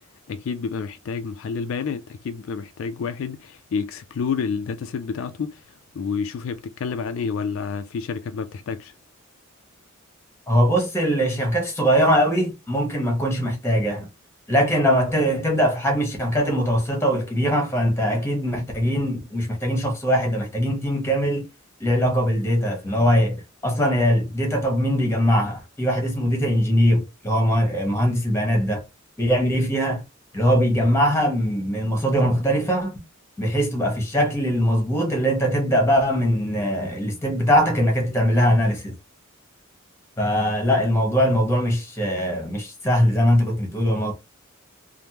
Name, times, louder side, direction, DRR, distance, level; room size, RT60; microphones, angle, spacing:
voice 1, 0.3-8.9, left 5 dB, 70° left, 0.3 m, -29 dB
voice 2, 10.5-14.1 14.5-21.5 21.8-28.8 29.2-30.0 30.3-33.0 33.4-38.9 40.2-44.1, equal, 15° left, 1.0 m, -21 dB
3.3 x 2.0 x 2.9 m
head